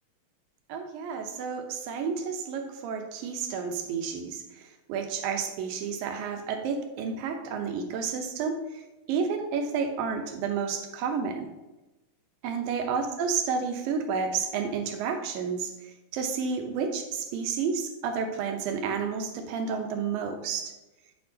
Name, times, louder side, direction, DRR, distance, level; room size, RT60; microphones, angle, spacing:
voice 1, 0.7-8.8 9.1-11.5 12.4-20.7, right 6 dB, 90° right, 4 dB, 2.6 m, -31 dB
9.3 x 6.6 x 2.8 m, 1.0 s
omnidirectional pair, 4.0 m